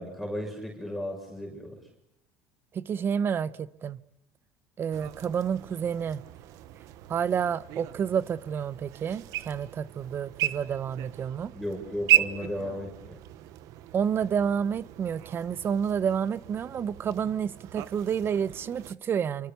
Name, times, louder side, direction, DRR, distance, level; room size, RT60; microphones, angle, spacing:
voice 1, 0.0-1.8 11.5-13.2, equal, ahead, 6.2 m, -35 dB
voice 2, 2.7-4.0 4.8-6.2 7.1-11.5 13.9-19.5, right 7 dB, 35° right, 1.0 m, -29 dB
sound 1, 4.9-18.9, right 15 dB, 65° right, 1.3 m, -34 dB
27.0 x 24.0 x 7.0 m
supercardioid pair, 110°, 6 cm